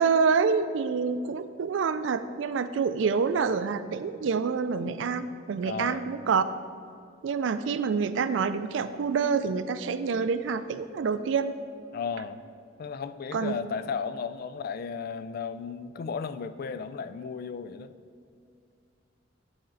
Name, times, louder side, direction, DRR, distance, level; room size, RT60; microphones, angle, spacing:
voice 1, 0.0-6.4 7.2-11.6 13.3-13.5, right 5 dB, 80° right, 12 dB, 0.4 m, -27 dB
voice 2, 5.6-6.0 11.9-12.4 12.8-17.9, left 6 dB, 50° left, 12 dB, 0.3 m, -34 dB
11.0 x 4.3 x 3.8 m, 2.4 s
head